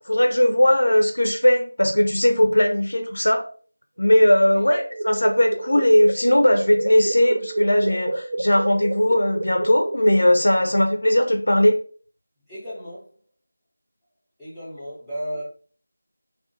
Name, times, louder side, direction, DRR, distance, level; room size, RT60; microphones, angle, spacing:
voice 1, 0.1-3.5 4.0-11.8, left 1 dB, 65° left, 5 dB, 0.5 m, -18 dB
sound 1, 4.0-10.7, right 2 dB, 50° right, 0.3 m, -30 dB
voice 2, 12.5-13.1 14.4-15.4, equal, ahead, -14 dB, 0.7 m, -34 dB
2.3 x 2.3 x 2.7 m, 0.41 s
figure-of-eight pair, 170°, 0 cm